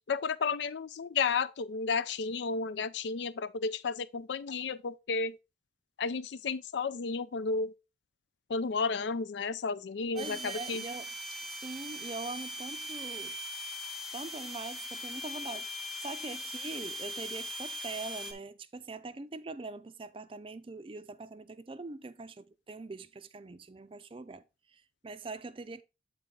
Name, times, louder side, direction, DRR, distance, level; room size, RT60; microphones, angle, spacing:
voice 1, 0.1-5.4 6.0-7.7 8.5-10.8, left 4 dB, 80° left, 0.5 m, -32 dB
voice 2, 10.1-11.1 11.4-13.4 14.1-15.7 16.0-25.8, right 3 dB, 30° right, 0.4 m, -43 dB
sound 1, 10.2-18.3, equal, ahead, 0.8 m, -40 dB
8.4 x 4.1 x 3.7 m
head